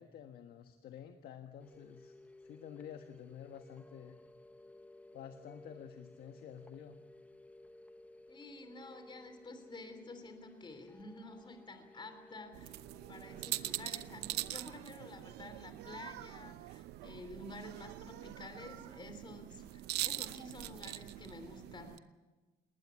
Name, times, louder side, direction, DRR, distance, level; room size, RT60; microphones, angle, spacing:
voice 1, 0.0-2.1 2.4-4.2 5.1-7.0, left 9 dB, 65° left, 6 dB, 1.5 m, -50 dB
sound 1, 1.6-14.5, left 1 dB, 10° left, 1.0 m, -58 dB
voice 2, 8.3-12.8 13.1-22.0, left 2 dB, 25° left, 8 dB, 3.3 m, -50 dB
sound 2, 12.5-22.0, right 15 dB, 80° right, 0.8 m, -43 dB
20.0 x 19.0 x 8.6 m, 1.2 s
cardioid pair, 110°, 17 cm